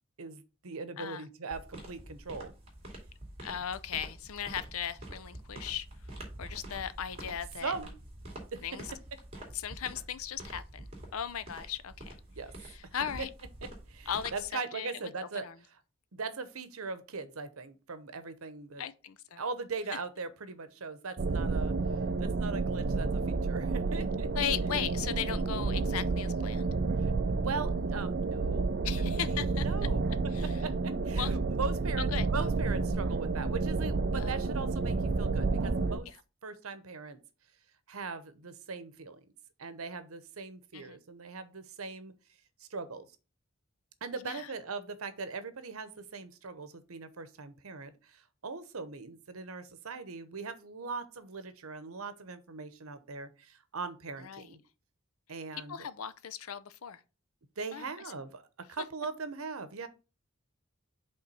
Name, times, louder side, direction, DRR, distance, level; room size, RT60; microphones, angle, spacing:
voice 1, 0.2-2.5 7.6-7.9 8.5-8.6 12.4-12.5 13.6-15.5 16.1-18.8 19.4-21.7 22.2-24.3 27.0-28.7 29.0-30.0 30.4-36.1 36.4-37.2 37.9-39.2 39.6-42.1 42.6-43.1 44.0-54.6 55.3-55.9 57.6-58.4 58.7-59.9, right 4 dB, 85° right, 0.9 m, -40 dB
sound 1, 1.5-14.5, right 1 dB, 30° right, 2.4 m, -47 dB
voice 2, 3.4-5.9 6.4-7.7 8.6-8.9 9.5-12.2 12.6-13.3 14.1-14.9 15.3-15.6 18.8-19.4 24.4-26.7 28.8-29.7 30.3-30.5 31.2-31.3 32.1-32.3 34.2-34.5 36.1-36.2 40.7-41.0 44.2-44.5 54.2-54.5 55.7-57.0 57.7-57.9, left 9 dB, 85° left, 0.6 m, -37 dB
sound 2, 21.2-36.0, right 3 dB, 50° right, 0.5 m, -30 dB
5.4 x 3.7 x 5.5 m
head